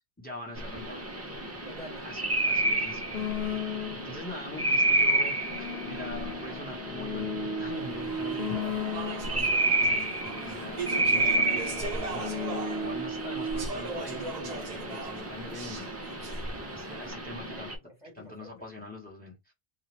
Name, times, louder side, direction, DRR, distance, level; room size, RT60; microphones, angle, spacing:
voice 1, 0.2-1.2 2.0-12.4 12.8-15.9 16.7-17.7 18.1-19.5, left 1 dB, 10° left, 0.9 m, -43 dB
sound 1, 0.6-17.7, right 2 dB, 20° right, 0.4 m, -31 dB
voice 2, 1.6-2.2 2.5-2.8 3.1-3.8 9.2-9.7 17.5-18.5, right 1 dB, 30° left, 1.2 m, -50 dB
sound 2, 3.1-4.2 5.0-9.5 10.2-13.6, left 3 dB, 75° left, 0.8 m, -36 dB
Speech / Chatter, 7.7-17.1, right 4 dB, 45° right, 0.8 m, -39 dB
2.5 x 2.4 x 3.2 m
omnidirectional pair, 1.1 m